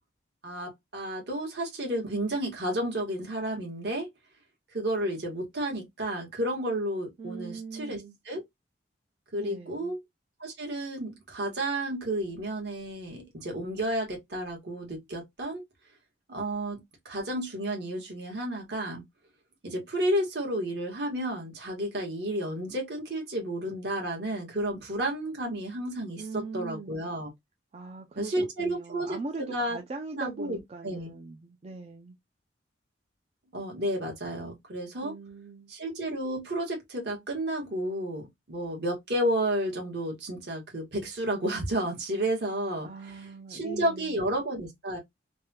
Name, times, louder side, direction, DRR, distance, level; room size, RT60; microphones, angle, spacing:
voice 1, 0.4-4.1 4.7-8.0 8.3-8.4 9.3-10.0 10.4-15.6 16.3-19.0 19.6-27.3 28.1-29.8 30.1-31.1 33.5-35.1 35.7-42.9 43.5-45.0, right 1 dB, 60° right, 1.4 m, -31 dB
voice 2, 7.2-8.2 9.3-9.9 26.2-27.2 27.7-32.2 35.0-35.7 42.8-44.3, right 4 dB, 35° right, 0.4 m, -41 dB
3.4 x 2.2 x 2.7 m
head